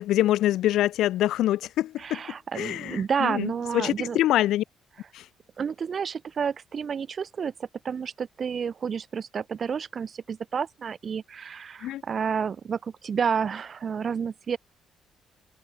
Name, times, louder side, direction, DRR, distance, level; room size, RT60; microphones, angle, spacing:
voice 1, 0.0-2.2 2.5-4.6 5.1-5.2 11.8-12.0, left 13 dB, 65° left, 0.9 m, -25 dB
voice 2, 2.0-4.2 5.6-14.6, right 6 dB, 45° right, 0.9 m, -30 dB
figure-of-eight pair, 45°, 0 cm